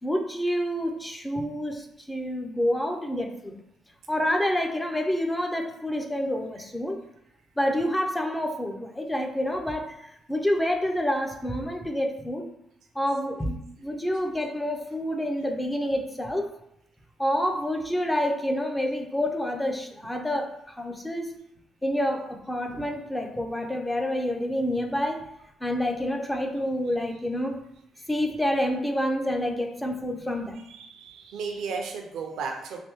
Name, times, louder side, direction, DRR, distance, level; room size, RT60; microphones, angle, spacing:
voice 1, 0.0-3.6 4.1-7.0 7.6-12.5 12.9-16.5 17.2-21.4 21.8-25.3 25.6-27.6 28.1-30.6, equal, 10° left, 4 dB, 0.5 m, -28 dB
voice 2, 30.7-32.8, right 5 dB, 80° right, 2 dB, 0.5 m, -34 dB
3.3 x 2.6 x 3.0 m, 0.76 s
cardioid pair, 90°, 0 cm